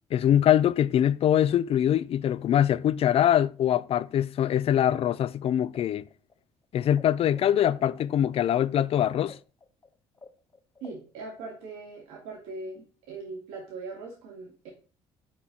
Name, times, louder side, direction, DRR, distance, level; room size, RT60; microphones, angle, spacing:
voice 1, 0.1-6.0 6.7-9.4, left 10 dB, 50° left, 0.4 m, -23 dB
sound 1, 5.7-7.0 7.3-11.8, left 4 dB, 25° left, 1.0 m, -51 dB
voice 2, 10.8-14.7, right 3 dB, 85° right, 2.4 m, -40 dB
5.9 x 4.6 x 4.0 m
supercardioid pair, 65°, 13 cm